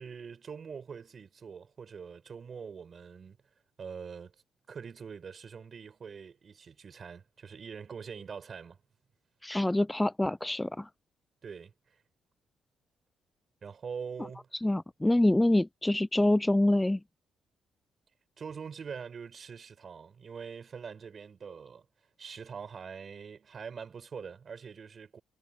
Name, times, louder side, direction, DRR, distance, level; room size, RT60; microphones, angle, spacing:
voice 1, 0.0-3.4 3.8-4.3 4.7-8.8 11.4-12.0 13.6-14.5 18.4-21.9 22.2-25.2, right 6 dB, 45° right, 5.2 m, -44 dB
voice 2, 9.4-10.9 14.6-17.0, left 1 dB, 10° left, 0.3 m, -26 dB
cardioid pair, 90°, 0 cm